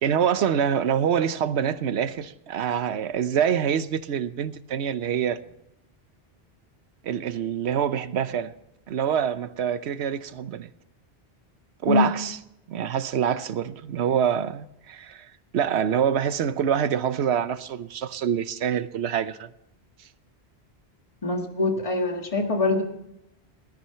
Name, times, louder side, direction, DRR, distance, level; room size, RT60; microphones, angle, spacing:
voice 1, 0.0-5.4 7.0-8.5 8.9-10.7 11.8-12.4 12.7-19.5, right 8 dB, 80° right, 1.0 m, -25 dB
voice 2, 21.2-22.8, left 3 dB, 30° left, 1.8 m, -23 dB
17.5 x 13.0 x 5.7 m
omnidirectional pair, 1.1 m